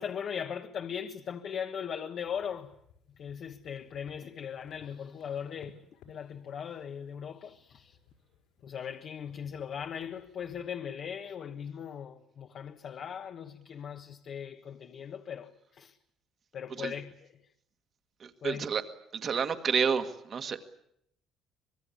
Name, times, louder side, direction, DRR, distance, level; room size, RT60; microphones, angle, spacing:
voice 1, 0.0-2.7 3.2-5.8 6.1-8.0 8.6-16.0 16.5-17.1 18.4-18.6, left 8 dB, 45° left, 1.3 m, -39 dB
sound 1, 2.2-10.6, left 6 dB, 85° left, 4.9 m, -62 dB
voice 2, 18.2-18.8 19.1-20.6, right 6 dB, 35° right, 1.9 m, -30 dB
25.5 x 21.5 x 8.5 m
cardioid pair, 155°, 0 cm